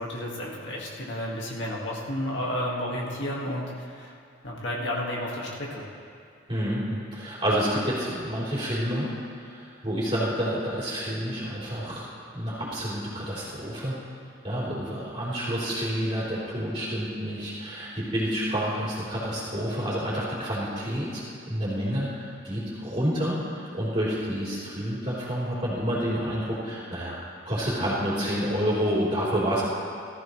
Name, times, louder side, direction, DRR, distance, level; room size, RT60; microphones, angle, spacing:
voice 1, 0.0-4.1 4.4-5.8, left 1 dB, 60° left, -4 dB, 2.0 m, -32 dB
voice 2, 6.5-9.1 9.4-12.1 12.3-14.0 14.4-27.2 27.4-29.6, equal, 25° right, -8 dB, 3.9 m, -29 dB
19.0 x 14.0 x 3.3 m, 2.4 s
head